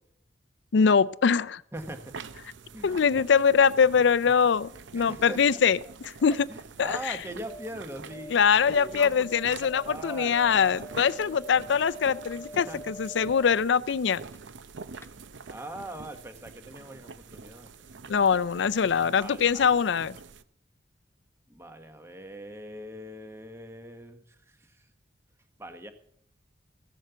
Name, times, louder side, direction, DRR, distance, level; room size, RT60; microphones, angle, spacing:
voice 1, 0.7-1.6 2.8-5.8 6.0-6.5 6.8-7.2 8.3-14.2 18.1-20.2, left 6 dB, 75° left, 18 dB, 0.4 m, -23 dB
voice 2, 1.7-2.2 2.7-3.0 4.9-5.6 6.2-8.4 8.7-9.3 9.7-11.7 12.5-12.9 15.5-17.7 18.0-18.1 18.4-18.5 19.2-19.9 21.5-24.9 25.6-25.9, right 1 dB, 15° right, 7 dB, 1.1 m, -42 dB
sound 1, 1.7-20.4, right 4 dB, 80° right, 0.6 m, -46 dB
sound 2, 6.5-14.7 14.9-15.1, right 1 dB, 15° left, 0.4 m, -46 dB
15.5 x 7.4 x 6.9 m, 0.71 s
head